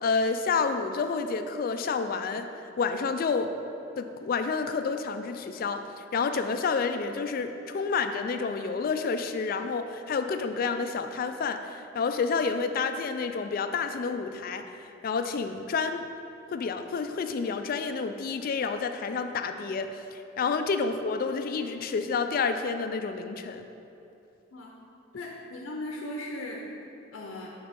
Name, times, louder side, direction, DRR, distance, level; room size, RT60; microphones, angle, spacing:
voice 1, 0.0-2.5 2.8-3.5 4.0-16.1 16.5-23.7, left 5 dB, 45° left, 8 dB, 0.3 m, -29 dB
voice 2, 25.1-26.6 27.1-27.5, left 1 dB, 90° left, -2 dB, 0.6 m, -37 dB
5.4 x 3.9 x 5.1 m, 2.8 s
head